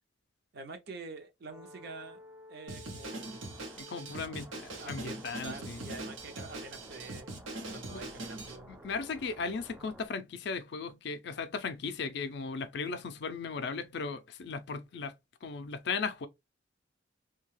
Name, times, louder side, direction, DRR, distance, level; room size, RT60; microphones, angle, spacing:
voice 1, 0.5-2.2 2.5-3.7 4.8-7.3 7.7-8.7, right 3 dB, 55° right, 0.6 m, -47 dB
sound 1, 1.5-10.1, equal, 10° right, 0.3 m, -52 dB
Drum kit, 2.7-8.6, right 2 dB, 90° right, 0.8 m, -42 dB
voice 2, 3.8-5.8 7.9-8.1 8.7-15.1 15.4-16.3, left 4 dB, 60° left, 0.4 m, -37 dB
2.7 x 2.2 x 3.1 m
head